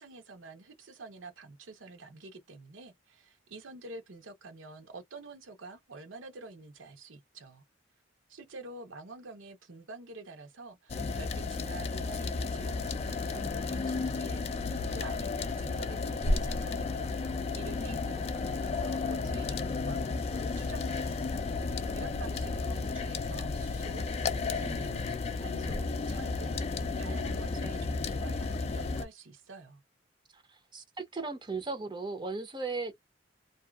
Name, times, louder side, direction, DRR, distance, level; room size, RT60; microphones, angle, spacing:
voice 1, 0.0-7.6 8.3-17.1 17.5-21.2 21.9-25.1 25.3-29.8, right 3 dB, 80° right, 0.9 m, -48 dB
sound 1, 10.9-29.0, left 3 dB, 35° left, 0.3 m, -33 dB
voice 2, 30.3-32.9, right 3 dB, 25° right, 0.5 m, -37 dB
2.6 x 2.3 x 2.3 m
head